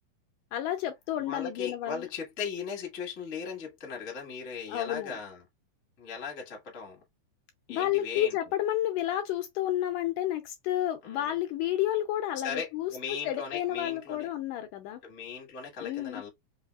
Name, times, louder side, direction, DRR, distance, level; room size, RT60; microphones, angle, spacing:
voice 1, 0.5-2.1 4.7-5.1 7.7-12.9 13.2-15.0 15.8-16.2, left 12 dB, 80° left, 1.9 m, -30 dB
voice 2, 1.2-5.5 6.0-7.0 7.7-8.4 11.0-11.4 12.4-14.3 15.0-16.3, left 6 dB, 50° left, 0.8 m, -38 dB
5.3 x 2.3 x 2.3 m
omnidirectional pair, 4.1 m